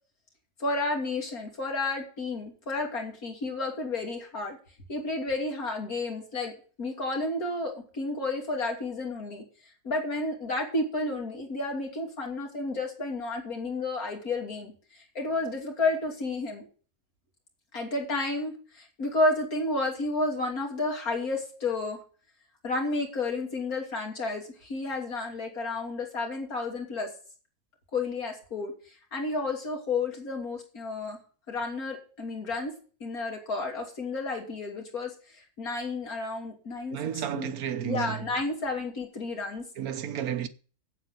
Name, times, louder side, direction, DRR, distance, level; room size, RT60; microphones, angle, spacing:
voice 1, 0.6-4.6 4.9-6.5 6.8-9.4 9.8-16.7 17.7-22.0 22.6-27.1 27.9-31.2 31.5-32.7 33.0-37.0 37.3-37.5 37.8-39.7, left 2 dB, 80° left, 3.5 m, -31 dB
voice 2, 36.9-38.2 39.8-40.5, right 9 dB, 85° right, 1.4 m, -32 dB
8.3 x 8.1 x 8.1 m
omnidirectional pair, 1.5 m